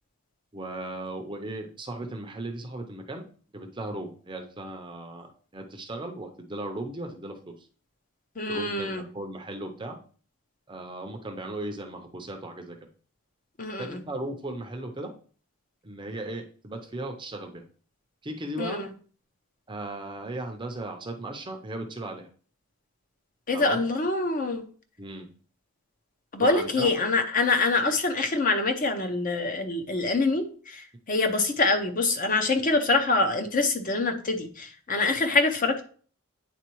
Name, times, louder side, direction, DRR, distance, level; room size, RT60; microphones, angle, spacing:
voice 1, 0.5-3.3 3.5-7.7 8.5-10.0 10.7-12.8 13.8-15.1 15.8-17.6 18.2-18.8 19.7-22.3 23.5-23.8 25.0-25.3 26.4-27.0, right 1 dB, 20° right, 4 dB, 0.6 m, -37 dB
voice 2, 8.4-9.0 13.6-14.0 18.6-18.9 23.5-24.6 26.3-35.8, left 3 dB, 35° left, 6 dB, 0.7 m, -25 dB
9.3 x 3.8 x 3.0 m, 0.43 s
head